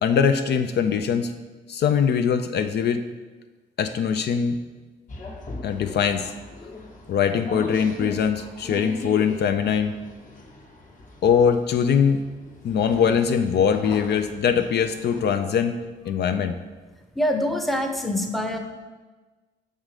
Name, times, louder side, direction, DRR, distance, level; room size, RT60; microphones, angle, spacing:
voice 1, 0.0-1.3 1.7-3.0 3.8-4.6 5.6-6.3 7.1-9.9 11.2-12.2 12.6-15.8 16.1-16.6, left 7 dB, 60° left, 8 dB, 0.4 m, -22 dB
sound 1, 5.1-15.2, left 1 dB, 40° left, 1.0 m, -39 dB
voice 2, 17.2-18.6, left 1 dB, ahead, 4 dB, 0.7 m, -25 dB
6.4 x 3.7 x 4.9 m, 1.3 s
cardioid pair, 90°, 20 cm